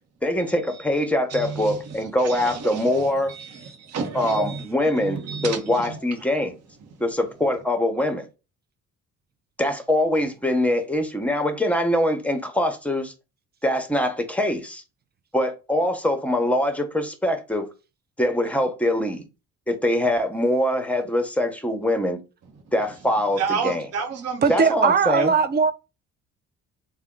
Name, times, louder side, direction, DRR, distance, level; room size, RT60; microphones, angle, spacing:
voice 1, 0.2-3.3 4.1-6.6 7.0-8.3 9.6-13.1 13.6-14.8 15.3-17.7 18.2-19.3 19.7-22.2 22.7-23.9 24.5-25.3, left 1 dB, 5° left, 0.8 m, -23 dB
voice 2, 1.3-6.0 23.4-24.7 25.2-25.3, right 5 dB, 55° right, 0.9 m, -31 dB
voice 3, 24.4-25.7, right 5 dB, 35° right, 0.4 m, -19 dB
3.6 x 2.2 x 3.6 m
cardioid pair, 90°, 30 cm